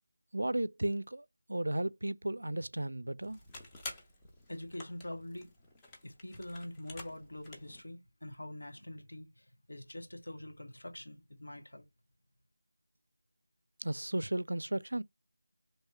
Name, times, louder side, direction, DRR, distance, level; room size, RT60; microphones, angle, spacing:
voice 1, 0.3-3.4 13.8-15.0, right 1 dB, 85° right, 0.4 m, -34 dB
sound 1, 3.2-7.8, left 2 dB, 10° left, 0.5 m, -50 dB
voice 2, 4.5-5.5 6.0-11.8, left 1 dB, 85° left, 1.4 m, -45 dB
3.1 x 2.7 x 4.3 m
figure-of-eight pair, 175°, 0 cm